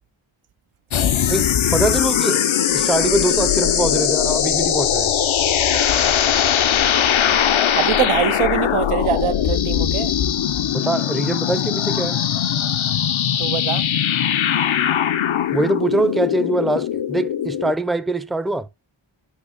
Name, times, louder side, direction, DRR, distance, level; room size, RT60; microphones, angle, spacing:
sound 1, 0.9-17.7, left 9 dB, 70° left, 0.6 m, -20 dB
voice 1, 1.3-2.4 2.7-5.1 10.7-12.2 15.5-18.7, right 2 dB, ahead, 0.4 m, -23 dB
voice 2, 7.7-10.1 13.4-13.9, right 11 dB, 90° right, 0.6 m, -23 dB
8.4 x 2.9 x 5.8 m
wide cardioid pair, 85°, 49 cm